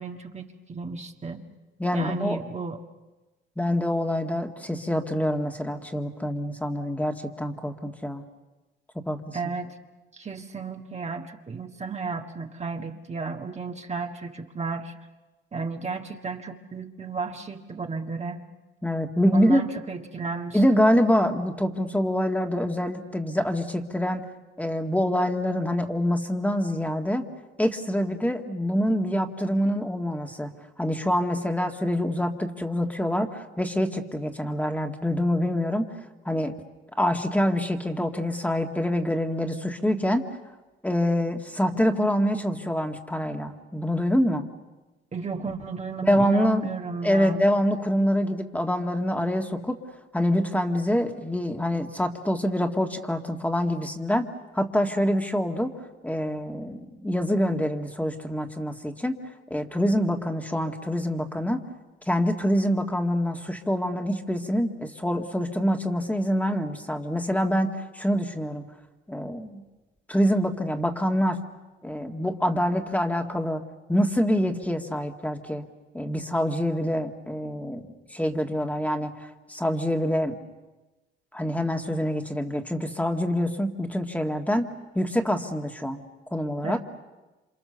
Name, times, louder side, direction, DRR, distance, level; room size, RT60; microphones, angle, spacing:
voice 1, 0.0-1.4 1.9-2.8 9.3-9.7 10.1-14.9 15.5-18.4 19.3-20.8 45.1-47.4 86.6-86.8, right 4 dB, 35° right, 4 dB, 1.7 m, -33 dB
voice 2, 1.8-2.4 3.6-8.2 9.0-9.4 18.8-19.6 20.5-24.2 24.6-27.3 27.6-30.5 30.8-35.9 36.3-36.5 37.0-40.2 40.8-44.5 46.1-46.7 47.0-49.8 50.1-54.3 54.5-55.7 56.0-59.2 59.5-61.6 62.1-68.7 69.1-69.6 70.1-71.4 71.8-73.6 73.9-75.6 75.9-80.4 81.3-84.7 85.0-86.0 86.3-86.8, equal, 5° left, 4 dB, 1.9 m, -25 dB
28.0 x 26.5 x 6.9 m, 1.1 s
cardioid pair, 90°, 20 cm